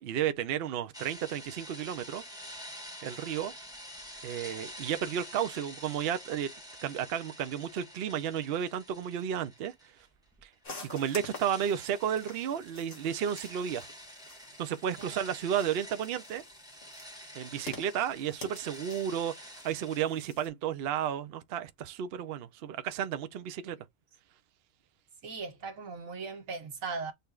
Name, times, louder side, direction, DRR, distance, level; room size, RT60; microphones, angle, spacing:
voice 1, 0.0-2.2 3.0-3.5 4.2-6.5 6.8-9.7 10.4-10.5 10.8-13.9 14.6-16.4 17.3-23.8, right 9 dB, 60° right, 0.7 m, -32 dB
sound 1, 0.9-10.0 10.3-20.0, equal, 5° right, 1.5 m, -48 dB
sound 2, 10.6-20.5, left 2 dB, 40° left, 2.1 m, -49 dB
voice 2, 25.2-27.1, right 4 dB, 80° right, 1.5 m, -39 dB
6.7 x 3.3 x 2.4 m
omnidirectional pair, 1.4 m